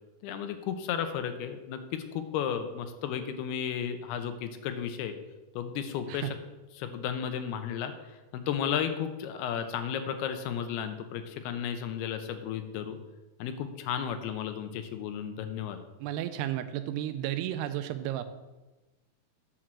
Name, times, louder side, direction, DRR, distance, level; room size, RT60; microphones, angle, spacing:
voice 1, 0.2-5.2 5.6-6.3 6.8-7.9 8.3-13.0 13.4-15.8, left 8 dB, 80° left, 8 dB, 2.7 m, -33 dB
voice 2, 16.0-18.3, right 12 dB, 85° right, 11 dB, 2.7 m, -33 dB
9.9 x 4.7 x 7.4 m, 1.1 s
omnidirectional pair, 4.6 m